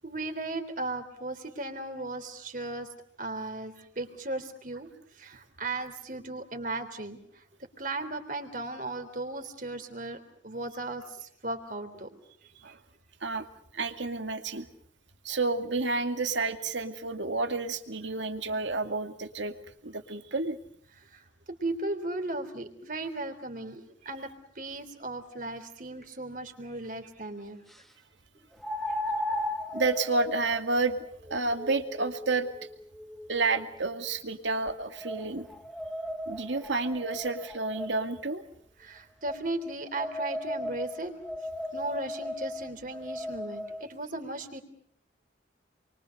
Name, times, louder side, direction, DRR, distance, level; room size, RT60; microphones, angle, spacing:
voice 1, 0.0-2.9 3.2-4.9 5.1-7.4 7.8-12.1 21.0-21.2 21.5-24.3 24.6-27.6 28.9-29.0 29.3-29.4 38.8-41.1 41.7-44.6, right 2 dB, 45° right, 6 dB, 3.5 m, -36 dB
voice 2, 13.7-14.7 15.2-19.5 19.8-20.6 29.7-31.0 31.3-32.5 33.3-35.5 36.3-38.4, right 3 dB, 80° right, 6 dB, 2.4 m, -30 dB
sound 1, 26.0-26.1 28.6-33.8 34.5-38.2 39.3-43.8, left 1 dB, ahead, 1.3 m, -37 dB
29.0 x 23.5 x 6.6 m, 0.67 s
head